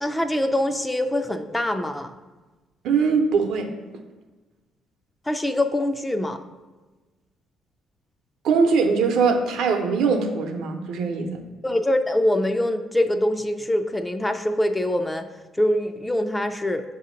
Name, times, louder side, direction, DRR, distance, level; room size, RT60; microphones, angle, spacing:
voice 1, 0.0-2.2 5.3-6.4 11.6-15.3 15.6-16.8, left 1 dB, 10° left, 7 dB, 0.3 m, -24 dB
voice 2, 2.8-3.7 8.4-11.4, right 5 dB, 75° right, 5 dB, 0.7 m, -21 dB
7.2 x 2.8 x 5.0 m, 1.2 s
cardioid pair, 130°, 0 cm